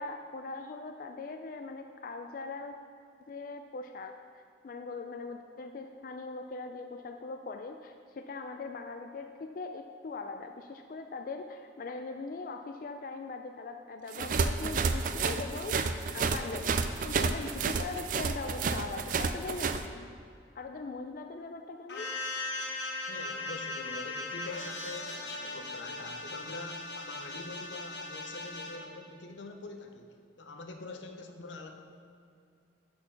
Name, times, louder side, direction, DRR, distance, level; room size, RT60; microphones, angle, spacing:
voice 1, 0.0-2.8 3.3-20.1 20.5-22.1, left 3 dB, 50° left, 5 dB, 0.3 m, -41 dB
sound 1, 14.1-19.8, right 5 dB, 45° right, 0.4 m, -30 dB
sound 2, 21.9-28.8, left 2 dB, 75° left, 1.1 m, -38 dB
voice 2, 23.1-31.7, left 3 dB, 90° left, 5 dB, 0.8 m, -44 dB
6.5 x 6.1 x 5.8 m, 2.4 s
head